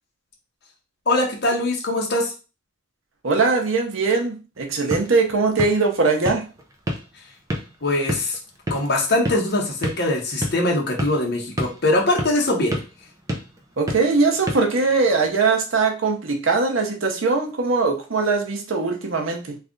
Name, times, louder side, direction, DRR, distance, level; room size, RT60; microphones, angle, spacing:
voice 1, 1.1-2.3 7.8-8.4 8.7-12.8, left 2 dB, 55° left, 1.0 m, -22 dB
voice 2, 3.2-6.5 13.8-19.6, right 4 dB, 85° right, 0.8 m, -21 dB
sound 1, 4.6-15.4, equal, 15° right, 0.6 m, -32 dB
3.2 x 2.4 x 3.8 m
head